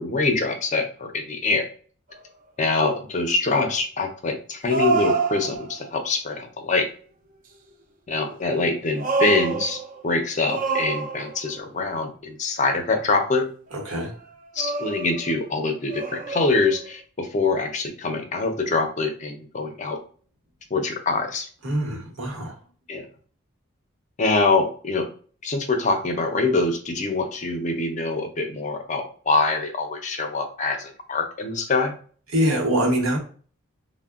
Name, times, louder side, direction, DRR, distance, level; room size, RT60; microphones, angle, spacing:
voice 1, 0.0-1.7 2.6-6.9 8.1-13.5 14.5-20.0 20.7-21.5 22.9-23.1 24.2-25.1 25.4-32.0, left 3 dB, 35° left, 6 dB, 0.4 m, -24 dB
sound 1, 2.1-2.2 4.7-5.9 8.5-10.0 10.4-11.6 13.8-14.0 14.6-15.4 15.9-16.9, right 3 dB, 40° right, 0.3 m, -27 dB
voice 2, 13.7-14.1 21.6-22.6 32.3-33.2, equal, 80° right, 0 dB, 0.9 m, -24 dB
3.5 x 2.0 x 2.3 m, 0.43 s
head